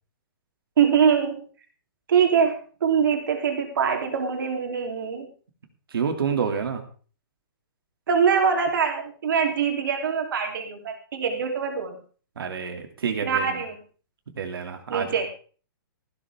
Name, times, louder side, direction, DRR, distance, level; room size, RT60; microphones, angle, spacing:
voice 1, 0.8-1.4 2.1-5.3 8.1-12.0 13.2-13.8 14.9-15.3, right 7 dB, 65° right, 2 dB, 3.3 m, -23 dB
voice 2, 5.9-6.8 12.4-13.6 14.3-15.2, right 6 dB, 85° right, 5 dB, 2.6 m, -28 dB
14.5 x 12.0 x 3.6 m, 0.40 s
hypercardioid pair, 170°, 12 cm